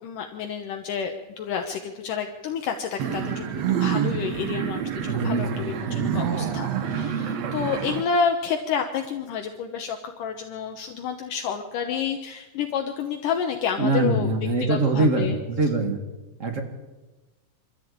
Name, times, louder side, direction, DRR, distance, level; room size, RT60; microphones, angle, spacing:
voice 1, 0.0-14.3 14.6-15.4, left 6 dB, 70° left, 4 dB, 2.6 m, -29 dB
sound 1, 3.0-8.0, right 8 dB, 60° right, 2.0 m, -27 dB
voice 2, 5.1-6.1 13.8-16.0 16.4-16.6, right 2 dB, 30° right, 4 dB, 1.8 m, -24 dB
24.5 x 14.0 x 8.7 m, 1.1 s
omnidirectional pair, 4.1 m